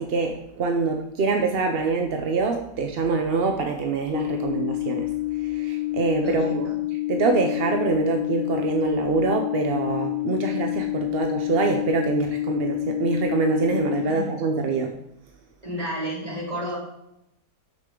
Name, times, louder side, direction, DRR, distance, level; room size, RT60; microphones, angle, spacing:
voice 1, 0.0-5.1 5.4-6.7 7.1-15.0, right 4 dB, 55° right, 4 dB, 0.6 m, -25 dB
sound 1, 4.1-14.1, left 18 dB, 40° left, 0.8 m, -28 dB
voice 2, 6.2-6.8 14.0-14.3 15.6-16.8, equal, 20° right, -6 dB, 3.1 m, -31 dB
10.5 x 6.5 x 3.8 m, 0.83 s
omnidirectional pair, 1.9 m